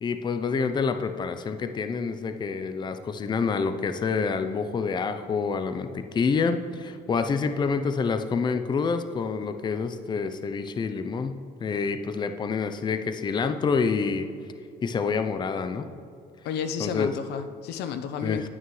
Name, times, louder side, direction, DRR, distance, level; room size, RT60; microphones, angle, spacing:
voice 1, 0.0-14.3 14.8-15.9 16.8-17.1 18.2-18.5, left 5 dB, 25° left, 9 dB, 0.5 m, -27 dB
voice 2, 16.4-18.5, left 7 dB, 80° left, 10 dB, 0.6 m, -32 dB
9.4 x 8.9 x 3.1 m, 2.3 s
cardioid pair, 110°, 17 cm